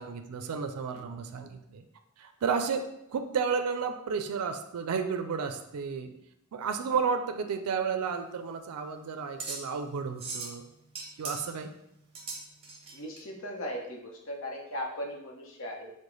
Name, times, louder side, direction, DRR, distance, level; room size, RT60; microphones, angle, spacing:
voice 1, 0.0-1.8 2.2-6.1 6.5-10.6 11.2-11.7, right 6 dB, 90° right, 7 dB, 0.4 m, -32 dB
voice 2, 0.9-1.2 12.9-15.9, equal, 60° left, 0 dB, 0.8 m, -38 dB
sound 1, 8.0-13.2, right 3 dB, 25° right, 0.8 m, -41 dB
4.8 x 2.1 x 3.8 m, 0.81 s
head